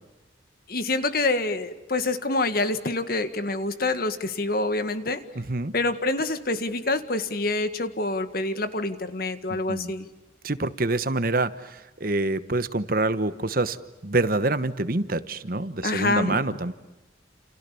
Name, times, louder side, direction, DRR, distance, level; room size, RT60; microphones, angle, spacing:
voice 1, 0.7-5.2 5.7-10.1 15.8-16.4, left 2 dB, 50° left, 10 dB, 1.9 m, -26 dB
voice 2, 5.4-5.7 9.5-9.9 10.4-16.7, right 2 dB, 50° right, 13 dB, 1.2 m, -26 dB
29.5 x 28.5 x 7.0 m, 1.0 s
head